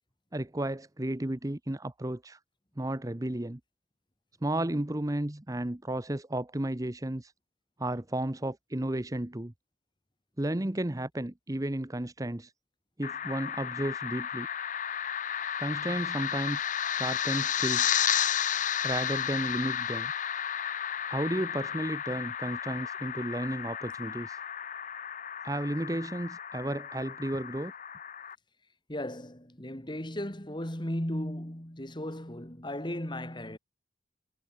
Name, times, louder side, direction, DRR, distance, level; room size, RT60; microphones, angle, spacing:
voice 1, 0.3-2.4 2.8-3.6 4.4-7.3 7.8-9.5 10.4-12.5 13.0-14.5 15.6-17.9 18.8-20.1 21.1-24.4 25.4-27.7, right 1 dB, 20° right, 0.9 m, -33 dB
sound 1, 13.0-28.3, left 9 dB, 45° left, 0.8 m, -33 dB
voice 2, 28.9-33.6, left 1 dB, 25° left, 2.8 m, -36 dB
head